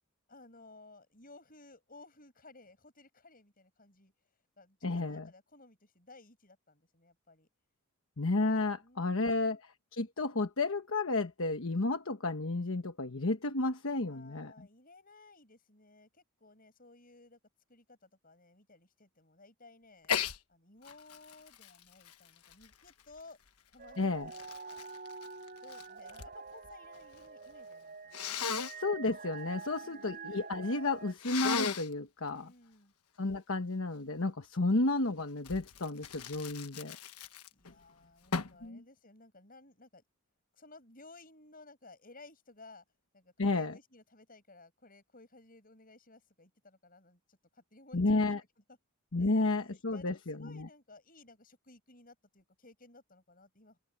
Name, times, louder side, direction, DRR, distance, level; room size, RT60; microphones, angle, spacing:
voice 1, 0.3-4.1 4.6-7.5 8.8-9.6 13.9-17.4 17.7-20.1 20.5-23.4 23.7-24.4 25.6-28.5 29.8-30.1 32.3-32.9 37.5-40.0 40.5-42.8 43.1-48.3 48.7-48.8 49.2-53.8, left 2 dB, 40° left, 7.7 m, -57 dB
voice 2, 4.8-5.2 8.2-14.7 24.0-24.3 28.8-32.5 33.2-37.0 38.6-38.8 43.4-43.8 47.9-48.4 49.1-50.7, left 2 dB, 65° left, 1.2 m, -32 dB
Sneeze, 20.0-20.4 20.8-23.2 23.9-26.3 26.6-27.3 28.1-28.8 31.2-31.9 35.4-37.7 38.3-38.6, left 6 dB, 85° left, 1.3 m, -37 dB
sound 1, 23.8-31.1, right 4 dB, 40° right, 5.7 m, -47 dB
open air
head